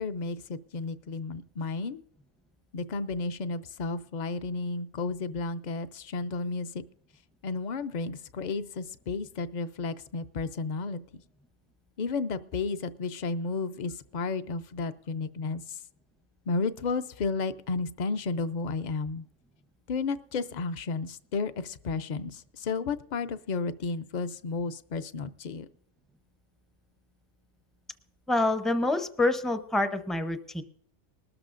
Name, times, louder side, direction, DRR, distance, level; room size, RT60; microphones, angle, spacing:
voice 1, 0.0-2.0 2.7-6.8 7.4-11.2 12.0-15.8 16.5-19.3 19.9-25.7, left 4 dB, 55° left, 12 dB, 0.5 m, -32 dB
voice 2, 28.3-30.6, left 2 dB, ahead, 9 dB, 0.4 m, -27 dB
20.5 x 13.0 x 2.5 m, 0.68 s
omnidirectional pair, 1.3 m